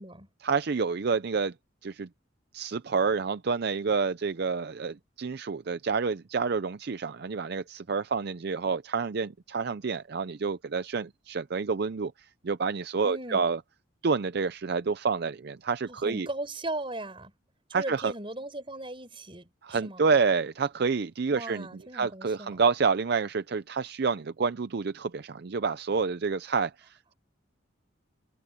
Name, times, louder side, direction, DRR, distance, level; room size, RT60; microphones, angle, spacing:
voice 1, 0.4-1.5 1.8-2.1 2.5-13.6 14.0-16.3 17.7-18.1 19.6-27.1, right 5 dB, 55° right, 0.5 m, -28 dB
voice 2, 13.0-13.5 15.9-17.3 17.7-20.0 21.3-22.6, right 2 dB, 25° right, 5.4 m, -38 dB
head